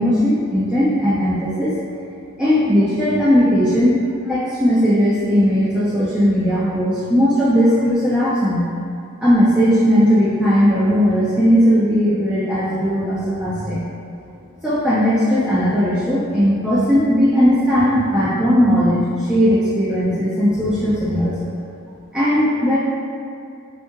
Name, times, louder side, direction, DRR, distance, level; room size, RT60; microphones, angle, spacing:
voice 1, 0.0-1.8 2.4-8.7 9.2-13.8 14.6-21.5 22.1-22.8, equal, 5° right, -11 dB, 0.3 m, -17 dB
2.8 x 2.4 x 2.6 m, 2.4 s
head